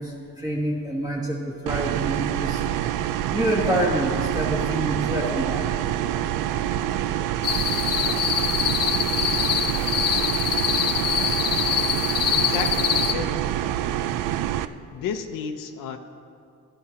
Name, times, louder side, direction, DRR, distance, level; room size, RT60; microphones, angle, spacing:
voice 1, 0.0-2.6 3.3-5.8, right 1 dB, 10° right, -4 dB, 1.3 m, -27 dB
sound 1, 1.7-14.7, right 12 dB, 80° right, 0.5 m, -26 dB
sound 2, 7.4-13.1, left 9 dB, 50° left, 0.6 m, -24 dB
voice 2, 12.4-13.4 14.9-16.0, left 7 dB, 90° left, 6 dB, 0.8 m, -32 dB
16.0 x 12.5 x 2.9 m, 2.4 s
cardioid pair, 140°, 32 cm